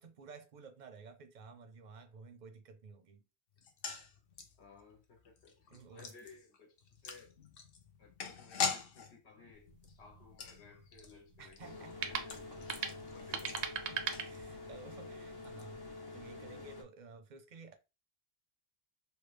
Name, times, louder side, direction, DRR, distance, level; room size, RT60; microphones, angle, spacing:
voice 1, 0.0-3.3 5.7-6.3 11.4-12.2 13.2-13.5 13.8-17.7, right 4 dB, 50° right, 0.6 m, -54 dB
sound 1, 3.6-14.8 15.1-15.2 15.4-15.6, left 5 dB, 60° left, 0.8 m, -44 dB
voice 2, 4.6-7.3 8.0-12.4 12.7-14.1, left 4 dB, 80° left, 1.2 m, -59 dB
sound 2, 9.5-14.9, right 7 dB, 85° right, 0.9 m, -42 dB
sound 3, 11.6-16.8, left 2 dB, 30° left, 0.6 m, -48 dB
3.2 x 2.3 x 3.2 m
omnidirectional pair, 1.1 m